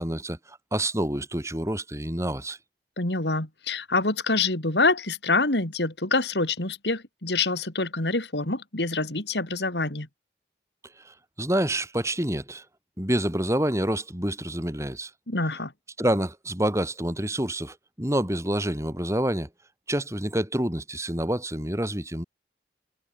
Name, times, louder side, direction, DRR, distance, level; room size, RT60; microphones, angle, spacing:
voice 1, 0.0-2.6 11.0-12.6 13.0-15.1 16.0-19.5 19.9-22.2, right 1 dB, 15° right, 5.1 m, -27 dB
voice 2, 3.0-10.1 15.3-15.7, left 3 dB, 75° left, 3.8 m, -26 dB
head